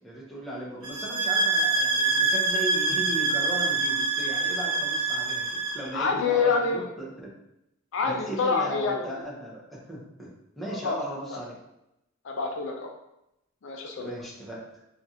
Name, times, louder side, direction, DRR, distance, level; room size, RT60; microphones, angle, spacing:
voice 1, 0.0-7.3 8.1-10.3 10.6-11.6 14.0-14.6, right 1 dB, ahead, -6 dB, 0.7 m, -37 dB
sound 1, 0.8-5.9, right 3 dB, 80° right, 0.8 m, -25 dB
voice 2, 5.9-6.9 7.9-9.1 10.7-11.0 11.3-11.4 12.2-12.9 13.6-14.1, left 4 dB, 65° left, 2 dB, 0.4 m, -27 dB
3.1 x 2.4 x 2.7 m, 0.86 s
head